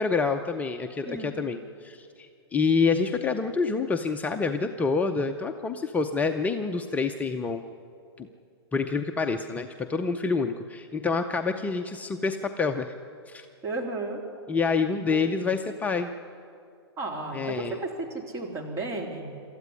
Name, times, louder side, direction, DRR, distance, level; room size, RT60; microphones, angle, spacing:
voice 1, 0.0-7.6 8.2-8.3 8.7-12.9 13.3-13.5 14.5-16.1 17.3-17.8, left 4 dB, 10° left, 5 dB, 0.6 m, -27 dB
voice 2, 13.6-14.2 15.1-15.2 17.0-19.3, right 3 dB, 20° right, 0 dB, 3.4 m, -33 dB
26.5 x 13.5 x 9.8 m, 2.5 s
hypercardioid pair, 135°, 14 cm